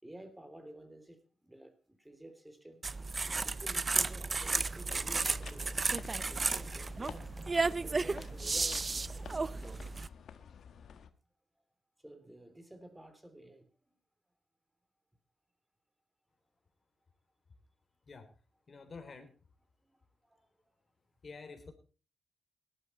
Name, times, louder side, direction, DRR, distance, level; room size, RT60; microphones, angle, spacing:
voice 1, 0.0-2.8 3.4-5.8 6.2-7.5 7.8-9.9 12.0-13.9 19.9-20.7, right 1 dB, 10° right, 9 dB, 3.2 m, -53 dB
sound 1, 2.8-10.1, right 3 dB, 35° right, 0.6 m, -33 dB
sound 2, 4.8-11.1, left 7 dB, 70° left, 1.3 m, -51 dB
voice 2, 18.7-19.3 21.2-21.7, left 4 dB, 45° left, 6 dB, 3.7 m, -49 dB
17.5 x 12.0 x 4.4 m, 0.37 s
cardioid pair, 70°, 0 cm